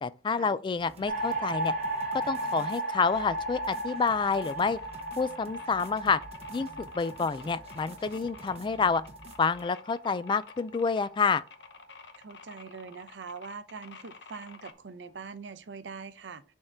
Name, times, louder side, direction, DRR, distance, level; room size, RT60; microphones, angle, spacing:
voice 1, 0.0-1.7 2.3-4.8 5.2-6.2 6.5-6.7 6.9-9.0 9.4-11.4, left 5 dB, 25° left, 0.3 m, -28 dB
sound 1, 0.8-9.6, right 2 dB, 35° right, 0.8 m, -51 dB
sound 2, 1.1-11.4, right 1 dB, 50° right, 1.9 m, -36 dB
sound 3, 3.9-14.7, left 5 dB, 70° left, 0.8 m, -51 dB
voice 2, 12.2-16.4, right 5 dB, 85° right, 0.6 m, -43 dB
6.5 x 3.7 x 4.4 m
head